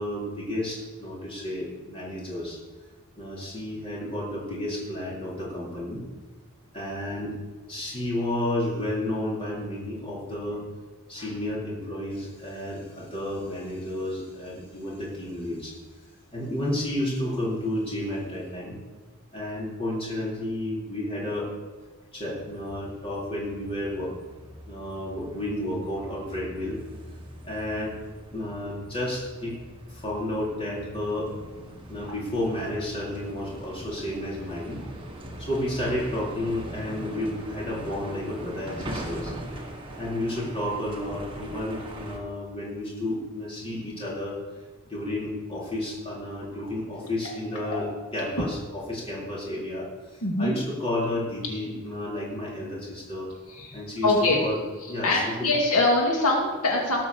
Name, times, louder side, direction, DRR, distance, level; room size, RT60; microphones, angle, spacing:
voice 1, 0.0-2.6 3.2-6.0 6.7-7.3 7.7-10.6 11.1-15.8 16.3-18.8 19.3-21.6 22.1-24.2 24.7-26.8 27.4-27.9 28.3-29.6 29.9-31.3 31.9-34.8 35.4-39.3 40.0-44.4 44.8-53.3 53.7-54.6 54.9-55.5, left 1 dB, 25° left, -5 dB, 4.4 m, -31 dB
sound 1, 22.3-42.2, right 1 dB, 25° right, 1.8 m, -41 dB
voice 2, 50.2-50.6 53.5-54.4 54.8-57.1, left 2 dB, 80° left, -1 dB, 2.3 m, -24 dB
17.5 x 6.0 x 7.0 m, 1.3 s
head